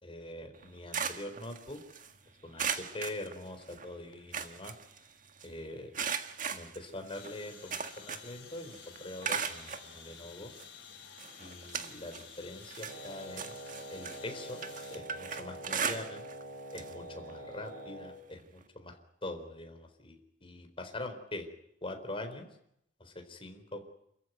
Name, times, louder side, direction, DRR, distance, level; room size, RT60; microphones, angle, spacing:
voice 1, 0.0-1.8 2.4-4.7 5.4-5.9 6.5-10.5 11.4-13.5 13.9-14.6 14.9-16.2 16.7-19.0 19.2-21.5 21.8-22.5 23.0-23.9, left 1 dB, 30° left, 5 dB, 4.2 m, -43 dB
sound 1, 0.5-2.1 2.6-3.9 4.1-5.5 5.9-8.4 8.7-9.9 10.6-10.7 11.2-12.3 12.6-16.4 16.7-16.9 17.3-17.4 18.6-18.7, right 6 dB, 45° right, 1.8 m, -38 dB
sound 2, 7.1-15.0, left 8 dB, 85° left, 4.4 m, -52 dB
Wind instrument woodwind instrument, 12.8-18.2, right 1 dB, 75° right, 6.7 m, -45 dB
29.0 x 15.0 x 9.4 m, 0.78 s
head